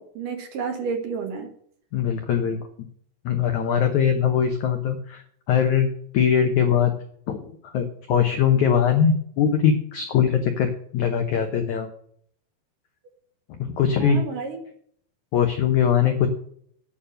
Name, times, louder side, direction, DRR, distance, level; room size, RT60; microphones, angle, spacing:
voice 1, 0.0-1.5 14.0-14.7, right 5 dB, 65° right, 4 dB, 2.5 m, -31 dB
voice 2, 1.9-2.6 3.2-5.9 6.1-6.9 7.3-11.9 13.5-14.2 15.3-16.3, left 8 dB, 75° left, 5 dB, 1.7 m, -21 dB
9.4 x 7.1 x 7.9 m, 0.63 s
omnidirectional pair, 4.9 m